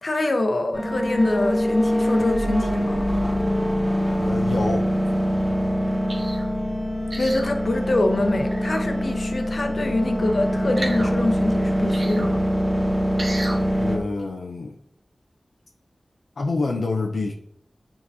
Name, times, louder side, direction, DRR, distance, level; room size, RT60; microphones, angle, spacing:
voice 1, 0.0-3.0 7.2-12.4, left 2 dB, 65° left, 5 dB, 0.9 m, -25 dB
sound 1, 0.7-14.0, equal, 10° right, 1.7 m, -24 dB
voice 2, 4.2-4.9 13.8-14.8 16.4-17.3, left 3 dB, 85° left, 0 dB, 0.5 m, -27 dB
sound 2, 6.1-6.5 7.1-7.5 8.4-8.8 10.8-11.1 11.9-12.3 13.2-13.6 14.2-14.3, right 1 dB, 70° right, 1.2 m, -33 dB
9.4 x 3.8 x 2.7 m, 0.72 s
wide cardioid pair, 55°, 0 cm